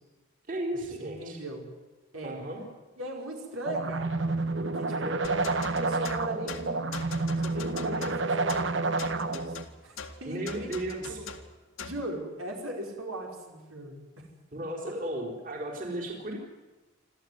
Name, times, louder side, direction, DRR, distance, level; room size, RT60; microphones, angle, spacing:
voice 1, 0.5-1.4 2.2-2.6 5.0-5.2 10.3-11.2 14.5-16.4, right 1 dB, 40° right, 1 dB, 4.2 m, -35 dB
voice 2, 1.0-1.7 2.1-2.4 3.0-4.2 4.6-7.0 7.4-9.6 9.8-10.0 10.2-10.7 11.1-11.2 11.8-14.3, right 1 dB, 85° right, 0 dB, 5.2 m, -39 dB
sound 1, 3.6-9.6, right 3 dB, 60° right, 1.2 m, -29 dB
sound 2, 5.2-12.1, left 5 dB, 80° left, 2.1 m, -42 dB
27.5 x 14.0 x 9.6 m, 1.2 s
head